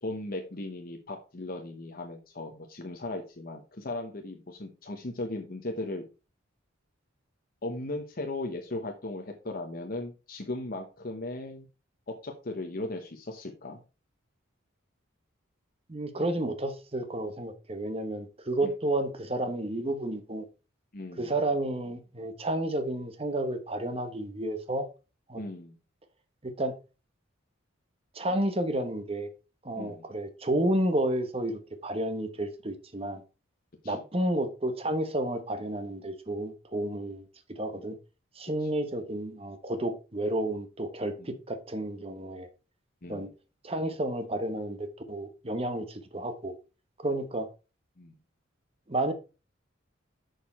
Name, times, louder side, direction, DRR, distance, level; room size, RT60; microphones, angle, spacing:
voice 1, 0.0-6.0 7.6-11.7 12.1-13.8 18.6-18.7 20.9-21.3 25.4-25.7 29.8-30.0 33.8-34.0 38.6-38.7 41.2-41.3 43.0-43.3 48.0-48.1, left 2 dB, 45° left, 1.0 m, -37 dB
voice 2, 15.9-20.5 21.2-24.9 25.3-25.4 26.4-26.7 28.1-29.3 29.6-33.2 33.8-37.2 37.5-38.0 38.4-42.5 43.1-43.3 43.6-46.5 47.0-47.5 48.9-49.1, right 1 dB, 30° right, 1.1 m, -31 dB
6.6 x 6.5 x 4.3 m
head